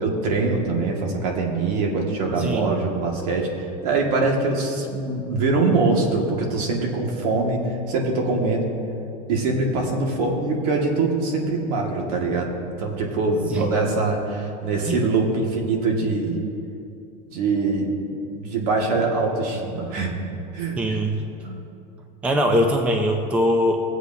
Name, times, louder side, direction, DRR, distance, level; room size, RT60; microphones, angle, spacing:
voice 1, 0.0-8.7 9.3-16.4 17.3-17.9 18.2-20.1 20.5-21.0 21.4-21.6, right 3 dB, 65° right, 0 dB, 1.9 m, -23 dB
voice 2, 2.4-2.7 13.5-13.6 14.9-15.0 20.8-21.2 22.2-23.8, equal, 5° right, 4 dB, 0.4 m, -21 dB
19.5 x 8.2 x 2.7 m, 2.6 s
supercardioid pair, 175°, 21 cm